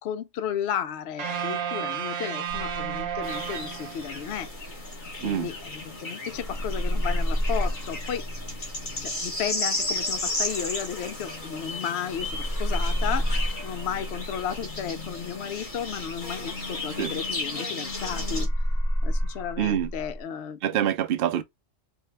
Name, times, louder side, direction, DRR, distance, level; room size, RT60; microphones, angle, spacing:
voice 1, 0.0-4.5 5.2-8.2 9.0-13.3 13.6-18.5 19.0-20.6, left 8 dB, 65° left, 0.8 m, -33 dB
sound 1, 1.2-4.4, right 8 dB, 80° right, 1.1 m, -32 dB
sound 2, 2.5-6.0 6.3-11.8 12.1-17.5 17.8-20.2, equal, 5° left, 1.0 m, -31 dB
sound 3, 3.2-18.5, left 2 dB, 40° left, 1.3 m, -34 dB
voice 2, 19.6-19.9 20.6-21.4, right 10 dB, 60° right, 0.6 m, -25 dB
3.5 x 2.2 x 3.2 m
omnidirectional pair, 1.3 m